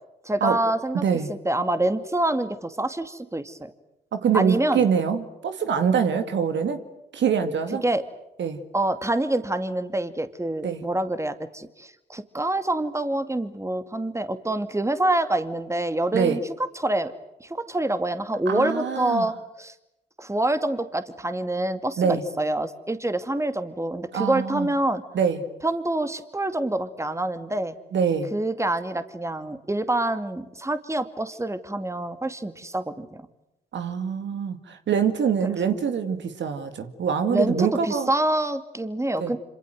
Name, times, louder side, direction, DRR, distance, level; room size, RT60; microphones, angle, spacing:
voice 1, 0.2-1.0 1.3-3.6 4.3-4.9 7.8-8.0 8.7-17.1 17.4-19.7 20.2-25.0 25.6-27.8 28.3-33.1 35.4-35.8 37.3-39.4, right 1 dB, 15° right, 10 dB, 2.4 m, -26 dB
voice 2, 1.0-1.3 4.1-6.8 7.1-7.8 8.4-8.6 10.6-10.8 16.1-16.4 18.5-19.3 22.0-22.2 24.1-24.7 25.1-25.4 27.9-28.3 33.7-38.1 39.2-39.3, right 7 dB, 65° right, 8 dB, 2.2 m, -24 dB
26.5 x 26.0 x 7.8 m, 0.89 s
hypercardioid pair, 40°, 21 cm